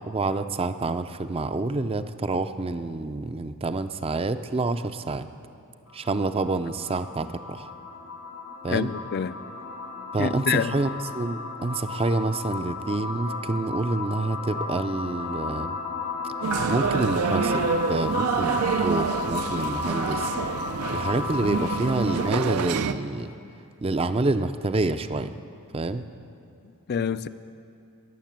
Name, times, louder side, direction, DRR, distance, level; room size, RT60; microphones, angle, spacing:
voice 1, 0.1-5.3 5.9-7.7 8.6-8.9 10.1-10.9 11.1-15.8 16.7-20.3 20.9-23.3 23.8-25.3 25.7-26.0, right 2 dB, 25° right, 0.5 m, -27 dB
sound 1, 5.9-22.5, left 4 dB, 75° left, 1.7 m, -34 dB
voice 2, 8.7-9.4 10.2-10.8 26.9-27.3, left 7 dB, 45° left, 0.4 m, -27 dB
sound 2, 16.4-22.9, right 5 dB, 75° right, 0.5 m, -27 dB
21.0 x 7.6 x 7.4 m
head